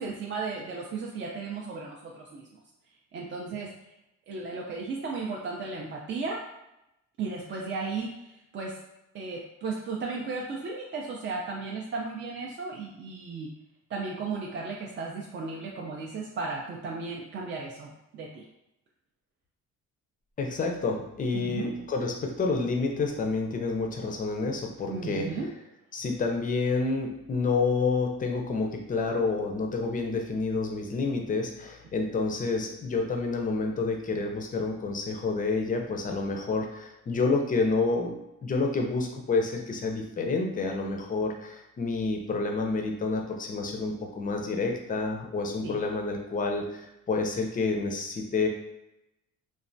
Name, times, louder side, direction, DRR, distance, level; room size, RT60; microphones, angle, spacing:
voice 1, 0.0-2.5 3.1-3.7 4.3-6.4 7.2-8.8 9.1-13.5 13.9-18.4 21.3-21.7 24.9-25.5 45.6-45.8, right 4 dB, 40° right, -2 dB, 0.4 m, -35 dB
voice 2, 20.4-25.3 25.9-38.1 38.4-48.5, left 3 dB, 30° left, 2 dB, 0.4 m, -29 dB
3.1 x 2.1 x 2.6 m, 0.89 s
cardioid pair, 125°, 30 cm